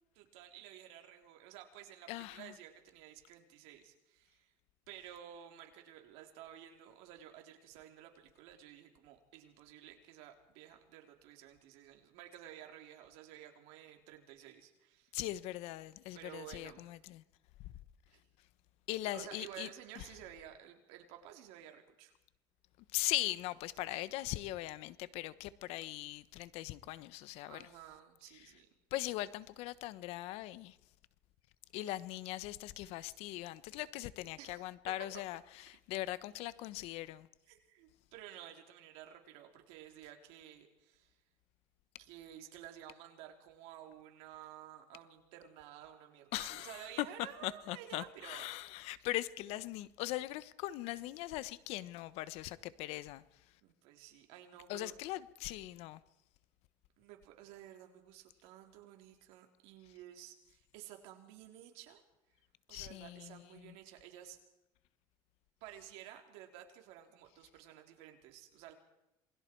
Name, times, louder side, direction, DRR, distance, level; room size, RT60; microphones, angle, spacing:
voice 1, 0.1-4.5 4.9-15.1 16.1-16.9 18.1-18.2 19.0-22.1 23.9-24.0 27.5-28.7 34.4-34.6 37.5-41.2 42.0-48.6 53.6-54.9 57.0-62.0 62.7-64.4 65.6-68.7, right 11 dB, 80° right, 3.8 m, -53 dB
voice 2, 2.1-2.5 15.1-17.2 17.6-17.7 18.9-19.7 20.0-20.1 22.9-27.7 28.9-30.8 31.7-37.3 46.3-53.2 54.7-56.0 62.7-63.7, left 16 dB, 75° left, 1.2 m, -40 dB
27.5 x 21.5 x 4.7 m
supercardioid pair, 100°, 11 cm